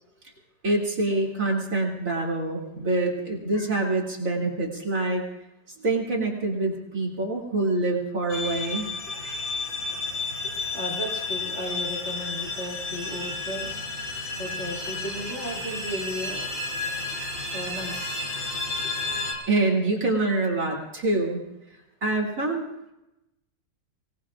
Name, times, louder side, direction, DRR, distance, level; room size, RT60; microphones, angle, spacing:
voice 1, 0.6-5.2 5.8-8.9 19.5-21.4 22.0-22.7, right 2 dB, 45° right, -2 dB, 3.0 m, -25 dB
sound 1, 8.3-19.3, left 3 dB, 80° left, 3.5 m, -32 dB
voice 2, 9.1-9.4 9.9-13.8 14.4-16.5 17.5-18.5 18.8-19.1, equal, 40° left, -1 dB, 3.0 m, -36 dB
24.5 x 19.0 x 2.4 m, 0.91 s
omnidirectional pair, 2.0 m